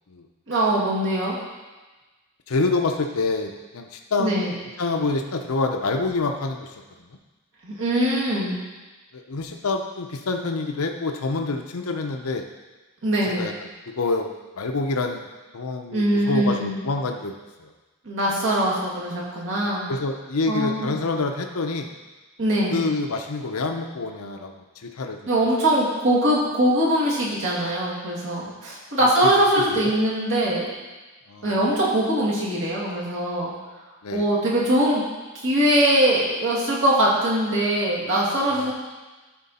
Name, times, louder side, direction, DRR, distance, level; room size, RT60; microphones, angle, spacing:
voice 1, 0.5-1.4 4.2-4.6 7.6-8.6 13.0-13.5 15.9-16.8 18.1-19.9 20.5-21.0 22.4-22.8 25.3-30.6 31.4-33.5 34.1-35.0 35.3-38.7, right 1 dB, 60° right, -6 dB, 2.3 m, -22 dB
voice 2, 2.5-6.7 9.1-12.5 13.3-13.5 13.9-14.3 14.6-15.3 15.5-17.7 19.9-21.9 22.7-24.5 24.8-25.2 29.0-29.1 29.6-29.9 31.3-31.5 34.0-34.3 38.5-38.7, left 3 dB, 75° left, 4 dB, 0.7 m, -27 dB
12.5 x 4.4 x 4.2 m, 1.2 s
head